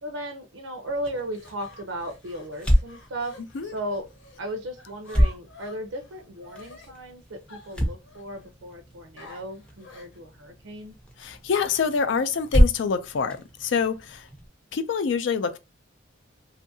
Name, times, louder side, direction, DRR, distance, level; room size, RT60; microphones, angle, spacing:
voice 1, 0.0-3.4 3.6-4.1 4.4-11.0, right 1 dB, 85° right, 0.6 m, -36 dB
sound 1, 0.9-14.5, equal, 5° left, 0.4 m, -29 dB
sound 2, 1.1-4.4 4.8-6.9 7.5-8.5 9.2-10.2, left 3 dB, 85° left, 0.9 m, -49 dB
voice 2, 11.2-14.3 14.7-15.6, left 6 dB, 70° left, 0.4 m, -26 dB
2.6 x 2.4 x 2.6 m
head